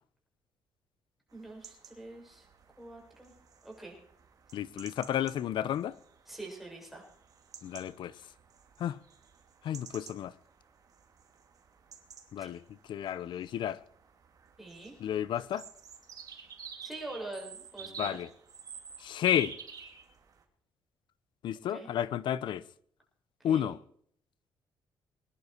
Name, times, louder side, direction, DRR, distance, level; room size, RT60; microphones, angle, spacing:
voice 1, 1.3-2.5 2.8-3.3 3.6-4.0 6.3-7.0 12.4-12.5 14.6-14.9 16.8-18.2 21.7-21.9 23.4-23.7, right 2 dB, ahead, 7.1 m, -44 dB
sound 1, 1.3-20.4, right 6 dB, 45° right, 2.6 m, -51 dB
voice 2, 4.5-5.9 7.6-8.1 8.8-9.0 9.6-10.3 12.3-12.6 12.9-13.8 15.0-15.6 18.0-18.3 19.0-19.5 21.4-22.6 23.4-23.8, left 10 dB, 70° left, 0.8 m, -31 dB
22.0 x 11.0 x 4.6 m
cardioid pair, 130°, 8 cm